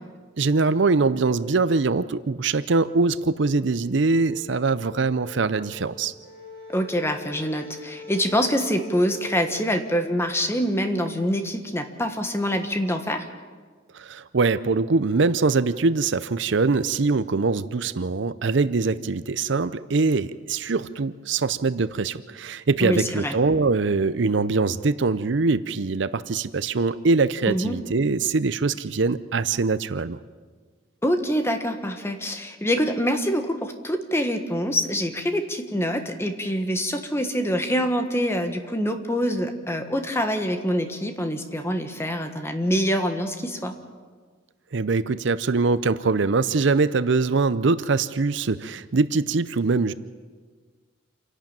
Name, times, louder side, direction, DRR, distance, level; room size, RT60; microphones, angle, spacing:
voice 1, 0.4-6.1 13.9-30.2 44.7-49.9, right 4 dB, 65° right, 15 dB, 0.6 m, -23 dB
sound 1, 3.7-9.8, left 1 dB, 50° left, 6.7 m, -43 dB
voice 2, 6.7-13.3 22.8-23.3 27.5-27.8 31.0-43.7, equal, 15° left, 6 dB, 1.5 m, -25 dB
27.5 x 11.5 x 8.9 m, 1.5 s
head